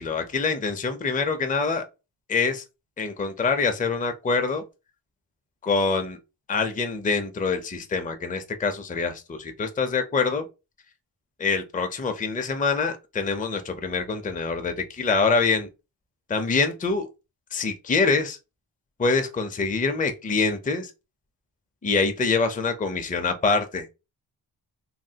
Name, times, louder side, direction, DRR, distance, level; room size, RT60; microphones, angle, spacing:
voice 1, 0.0-1.8 2.3-2.6 3.0-4.6 5.6-6.2 6.5-10.4 11.4-15.7 16.3-17.1 17.5-18.4 19.0-20.9 21.8-23.9, left 4 dB, 20° left, 0.5 m, -25 dB
3.2 x 2.2 x 2.7 m
wide cardioid pair, 80°, 48 cm